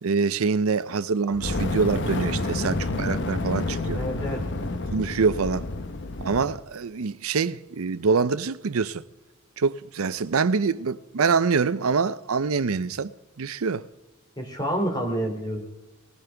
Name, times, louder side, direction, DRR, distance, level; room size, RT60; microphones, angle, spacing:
voice 1, 0.0-4.0 4.9-5.7 6.2-9.0 9.6-13.1 13.4-13.9, right 5 dB, 75° right, 0.6 m, -25 dB
Fire, 1.3-6.6, left 2 dB, 55° left, 0.9 m, -29 dB
voice 2, 3.9-4.4 14.4-15.6, right 1 dB, 20° left, 2.8 m, -28 dB
19.5 x 16.0 x 3.4 m
head